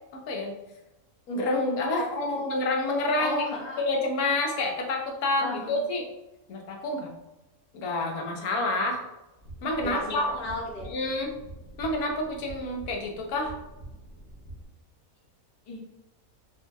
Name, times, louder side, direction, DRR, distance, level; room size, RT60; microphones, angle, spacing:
voice 1, 0.1-0.5 1.3-3.4 3.8-6.0 6.5-7.1 7.7-9.0 9.6-10.4 10.9-11.3 11.8-13.5, left 2 dB, 85° left, 1 dB, 1.3 m, -28 dB
voice 2, 1.9-2.5 3.2-3.8 5.3-5.8 9.8-10.9 15.7-15.8, left 2 dB, 35° left, -5 dB, 0.7 m, -34 dB
sound 1, 9.4-14.7, right 1 dB, 65° left, 1.4 m, -45 dB
4.1 x 2.7 x 3.4 m, 0.99 s
omnidirectional pair, 1.5 m